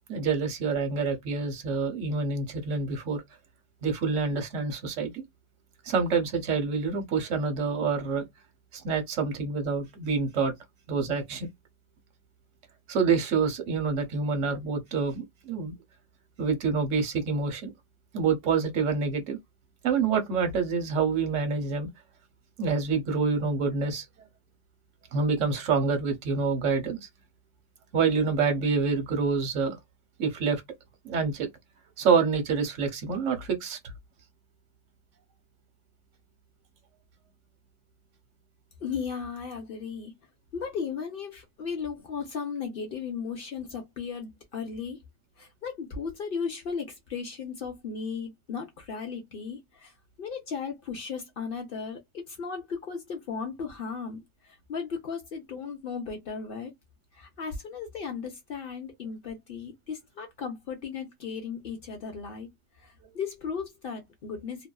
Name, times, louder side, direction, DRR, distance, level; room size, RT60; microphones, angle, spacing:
voice 1, 0.1-3.2 3.8-5.2 5.9-8.2 8.7-10.5 10.9-11.5 12.9-15.7 16.4-17.7 18.1-19.4 19.8-21.9 22.6-24.0 25.1-27.0 27.9-29.8 30.2-30.6 31.0-31.5 32.0-33.8, right 5 dB, 60° right, 1.1 m, -27 dB
voice 2, 38.8-40.2 40.5-45.0 45.4-49.9 50.2-56.7 57.1-62.5 62.8-64.7, left 6 dB, 60° left, 0.6 m, -36 dB
2.7 x 2.4 x 2.3 m
omnidirectional pair, 1.6 m